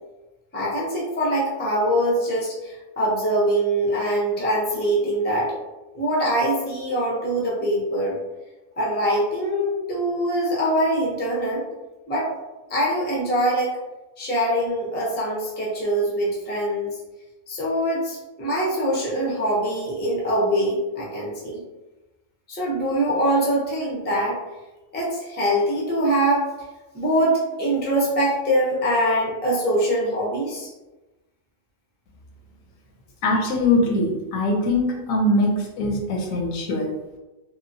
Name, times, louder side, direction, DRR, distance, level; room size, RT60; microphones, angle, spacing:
voice 1, 0.5-5.5 5.9-8.2 8.8-11.6 12.1-12.3 12.7-13.8 14.2-16.9 17.5-21.6 22.5-24.4 24.9-26.5 26.9-30.7, right 1 dB, 15° left, -5 dB, 0.4 m, -23 dB
voice 2, 33.2-36.9, left 2 dB, 80° left, 1 dB, 1.0 m, -22 dB
3.0 x 2.0 x 2.6 m, 1.1 s
omnidirectional pair, 1.4 m